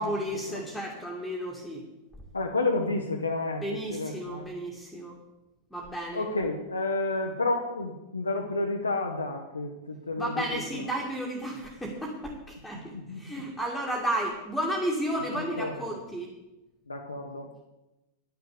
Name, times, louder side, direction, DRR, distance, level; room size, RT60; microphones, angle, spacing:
voice 1, 0.0-1.9 3.6-5.2 5.7-6.3 10.2-16.3, right 1 dB, ahead, -3 dB, 2.0 m, -33 dB
voice 2, 2.3-4.5 6.1-10.6 12.9-13.3 15.3-15.8 16.9-17.6, left 2 dB, 80° left, 1 dB, 1.0 m, -31 dB
10.5 x 7.0 x 8.2 m, 1.0 s
figure-of-eight pair, 90°, 0 cm